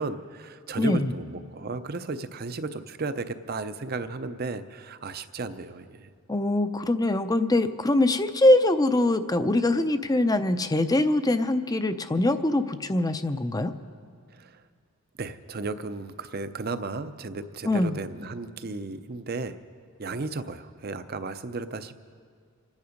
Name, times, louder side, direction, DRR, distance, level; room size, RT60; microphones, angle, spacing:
voice 1, 0.0-6.1 14.3-14.6 15.2-19.6 20.0-22.0, right 3 dB, 45° right, 11 dB, 0.6 m, -34 dB
voice 2, 0.8-1.1 6.3-13.7 17.6-18.0, left 1 dB, 15° left, 10 dB, 0.5 m, -23 dB
27.0 x 9.7 x 5.2 m, 2.1 s
head